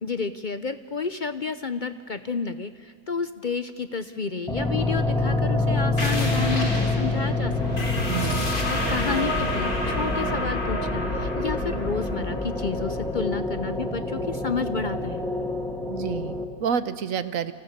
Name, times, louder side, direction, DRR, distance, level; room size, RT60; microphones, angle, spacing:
voice 1, 0.0-8.0 8.7-15.3, left 5 dB, 45° left, 11 dB, 0.6 m, -31 dB
sound 1, 4.5-16.4, left 2 dB, ahead, 2.0 m, -27 dB
sound 2, 6.0-15.2, left 1 dB, 75° left, 4.2 m, -30 dB
voice 2, 8.1-8.5 15.9-17.5, right 7 dB, 65° right, 13 dB, 1.3 m, -29 dB
30.0 x 26.5 x 6.7 m, 2.3 s
omnidirectional pair, 1.6 m